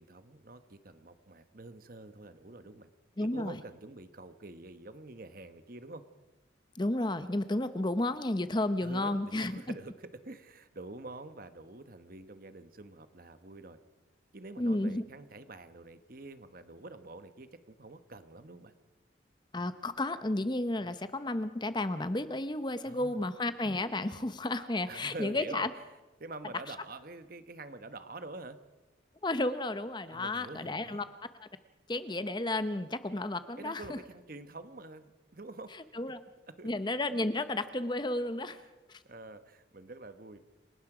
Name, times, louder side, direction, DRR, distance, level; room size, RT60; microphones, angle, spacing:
voice 1, 0.0-2.9 3.2-6.0 8.8-13.8 14.3-18.7 22.8-23.2 24.9-25.7 26.2-28.6 30.1-31.0 33.6-35.7 36.5-36.7 38.9-40.5, right 2 dB, 50° right, 10 dB, 1.1 m, -47 dB
voice 2, 3.2-3.6 6.7-9.7 14.6-15.0 19.5-25.7 29.2-31.0 31.4-31.5 31.9-34.0 35.9-36.2 36.6-38.6 38.9-39.0, left 2 dB, 25° left, 12 dB, 0.8 m, -32 dB
29.0 x 18.5 x 5.0 m, 1.1 s
head